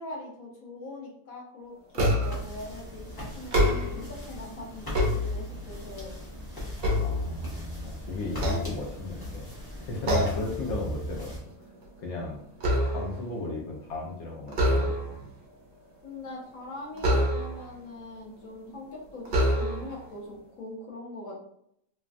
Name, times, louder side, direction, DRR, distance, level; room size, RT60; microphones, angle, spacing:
voice 1, 0.0-6.2 10.3-10.5 16.0-21.5, left 2 dB, 75° left, -3 dB, 1.3 m, -42 dB
sound 1, 1.9-2.5 3.4-4.2 4.7-5.8 6.3-7.8 8.3-9.3 10.1-10.6 10.9-11.2 11.6-13.3 14.5-15.3 17.0-17.8 18.5-18.6 19.3-20.0, equal, 50° right, 0.7 m, -27 dB
sound 2, 2.2-11.4, equal, 20° left, 0.6 m, -39 dB
voice 2, 7.0-9.5 9.8-11.3 12.0-12.4 12.9-15.3, left 2 dB, 60° left, -2 dB, 0.9 m, -35 dB
3.2 x 2.2 x 2.5 m, 0.71 s
omnidirectional pair, 1.5 m